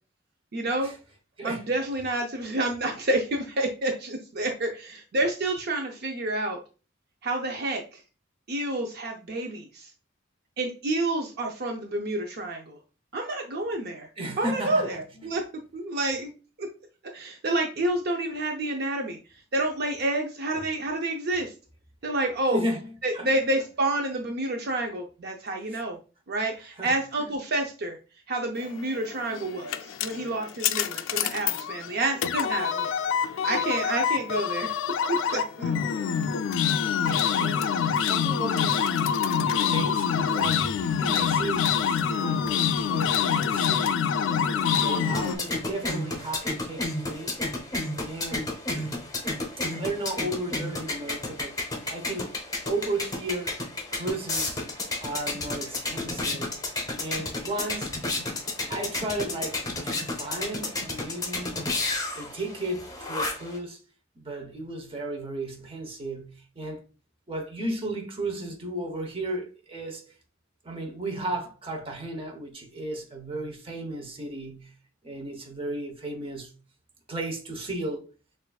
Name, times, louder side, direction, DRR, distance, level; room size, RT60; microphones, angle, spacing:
voice 1, 0.5-0.9 1.4-6.6 7.2-8.0 8.5-9.9 10.6-12.8 13.1-14.1 14.4-15.4 15.7-16.3 16.6-16.7 17.1-19.2 19.5-21.5 22.0-22.6 23.0-26.0 26.3-28.0 28.3-32.9 33.4-34.7 35.1-35.7, right 2 dB, 55° right, 0.6 m, -29 dB
voice 2, 14.2-14.9 15.2-15.3 20.5-20.6 22.5-23.3 26.8-26.9 37.0-37.7 38.0-38.8 39.7-40.7 41.0-43.9 44.8-47.4 48.0-48.5 48.7-49.0 49.8-51.6 51.9-52.3 52.7-53.6 53.9-54.6 55.0-56.6 57.0-57.9 58.7-61.6 62.1-63.8 64.2-66.8 67.3-70.1 70.6-74.7 75.0-76.5 77.1-78.0, right 1 dB, 30° right, 0.9 m, -34 dB
sound 1, 29.1-45.4, left 7 dB, 70° left, 0.3 m, -26 dB
sound 2, 44.4-63.6, left 2 dB, 20° left, 0.8 m, -32 dB
6.3 x 2.5 x 2.3 m
head